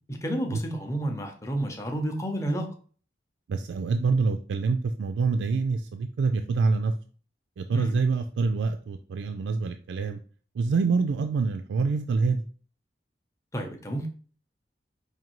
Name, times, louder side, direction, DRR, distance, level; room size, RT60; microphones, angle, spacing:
voice 1, 0.1-2.7 7.7-8.0 13.5-14.1, right 1 dB, 15° left, 3 dB, 0.6 m, -30 dB
voice 2, 3.5-6.9 7.6-10.2 10.6-12.4, right 4 dB, 85° right, 6 dB, 0.3 m, -26 dB
5.1 x 2.6 x 3.0 m, 0.41 s
head